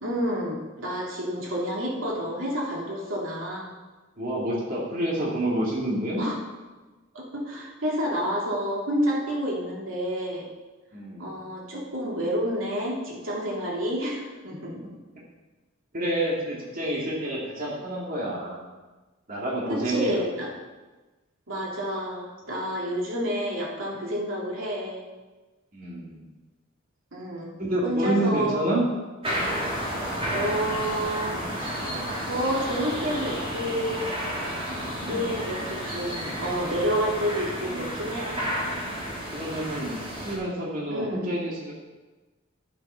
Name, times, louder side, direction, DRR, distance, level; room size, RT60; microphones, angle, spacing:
voice 1, 0.0-3.7 6.2-6.4 7.1-10.5 11.2-14.8 19.7-20.5 21.5-25.0 27.1-27.5 27.8-28.6 30.3-31.4 32.2-34.0 34.7-38.4 40.9-41.2, equal, 75° right, -3 dB, 2.6 m, -29 dB
voice 2, 4.2-6.2 10.9-11.3 15.9-18.6 19.3-20.3 25.7-26.2 27.6-28.8 35.0-35.4 39.3-39.9 40.2-41.7, right 1 dB, 45° right, -4 dB, 2.2 m, -28 dB
sound 1, 29.2-40.4, equal, 30° right, 3.6 m, -31 dB
11.5 x 7.7 x 5.7 m, 1.2 s
head